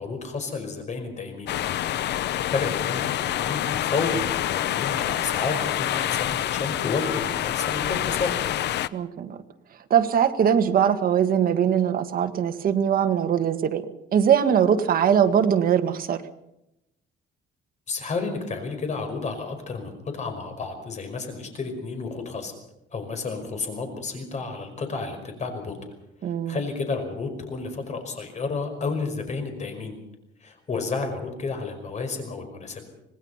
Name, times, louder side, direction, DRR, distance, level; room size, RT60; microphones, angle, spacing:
voice 1, 0.0-1.5 2.5-8.4 17.9-22.5 22.9-25.8 26.5-30.0 30.4-32.8, left 4 dB, 35° left, 6 dB, 5.3 m, -31 dB
sound 1, 1.5-8.9, left 12 dB, 60° left, 0.8 m, -27 dB
voice 2, 8.9-9.4 9.9-13.8 14.1-16.2 26.2-26.5, right 8 dB, 45° right, 7 dB, 1.8 m, -21 dB
26.0 x 19.0 x 5.7 m, 0.85 s
cardioid pair, 145°, 20 cm